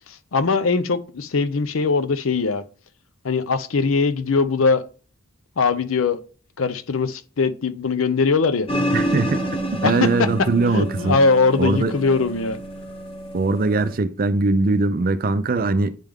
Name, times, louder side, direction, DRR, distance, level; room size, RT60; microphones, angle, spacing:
voice 1, 0.3-2.6 3.2-4.8 5.6-6.2 6.6-8.7 9.8-12.6, left 4 dB, 75° left, 0.6 m, -21 dB
sound 1, 8.7-14.0, right 1 dB, 30° left, 1.2 m, -28 dB
voice 2, 8.9-9.4 9.7-11.2 11.6-11.9 13.3-16.0, right 3 dB, 45° right, 0.5 m, -21 dB
9.1 x 3.4 x 3.6 m
head